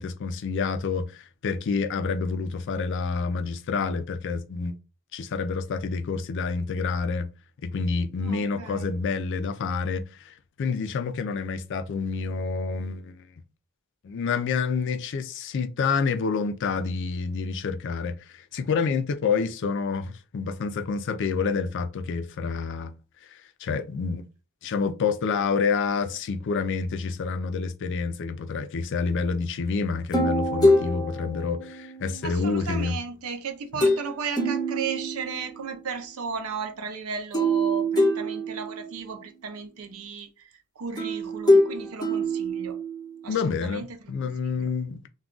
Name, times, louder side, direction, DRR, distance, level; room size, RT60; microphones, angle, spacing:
voice 1, 0.0-4.7 5.1-7.3 7.6-13.2 14.0-22.9 23.3-24.2 24.6-33.0 33.7-33.8 43.3-45.1, left 5 dB, 55° left, 0.4 m, -28 dB
voice 2, 8.2-8.9 32.2-40.5 40.8-42.8 43.2-44.7, right 5 dB, 70° right, 0.5 m, -35 dB
sound 1, 30.1-32.4 33.8-34.1 34.4-35.7 37.3-39.0 41.0-43.2, equal, 20° left, 0.6 m, -24 dB
2.3 x 2.3 x 3.7 m
head